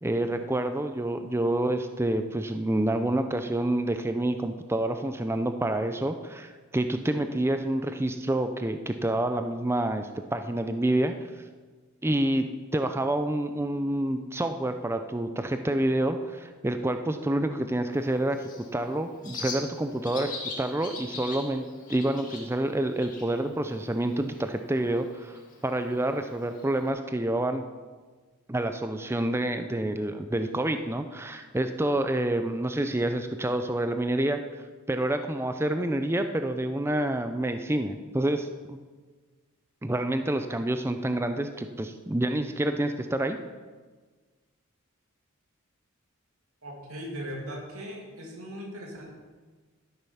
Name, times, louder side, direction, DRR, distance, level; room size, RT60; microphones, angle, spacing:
voice 1, 0.0-11.1 12.0-21.6 21.9-27.6 28.5-34.4 34.9-38.8 39.8-43.4, right 1 dB, 10° right, 8 dB, 0.5 m, -28 dB
Bird, 17.9-26.9, left 4 dB, 35° left, 2.0 m, -43 dB
voice 2, 46.6-49.1, equal, 80° right, -1 dB, 2.6 m, -39 dB
12.5 x 7.3 x 5.7 m, 1.4 s
head